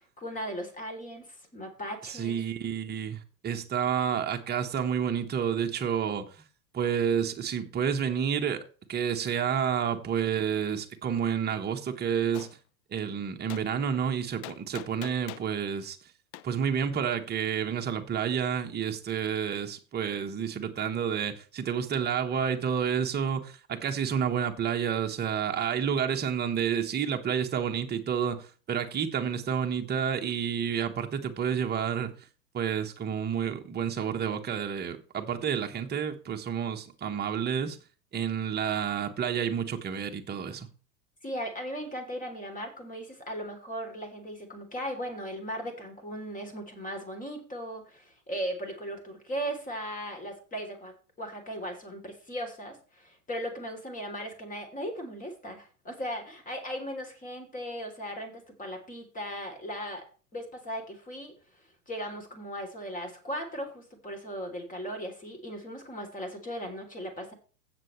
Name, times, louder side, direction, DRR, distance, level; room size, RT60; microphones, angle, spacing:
voice 1, 0.2-2.4 41.2-60.0 60.3-61.3 61.9-67.3, equal, 15° left, 3.3 m, -37 dB
voice 2, 2.1-6.2 6.7-8.6 8.9-12.5 12.9-16.0 16.4-32.1 32.5-37.8 38.1-40.7, right 8 dB, 20° right, 1.3 m, -30 dB
Gunshot gunfire, 12.3-12.5 13.5-13.7 14.4-15.5 16.3-16.5, left 14 dB, 30° left, 0.6 m, -42 dB
15.5 x 7.1 x 3.2 m
figure-of-eight pair, 95°, 49 cm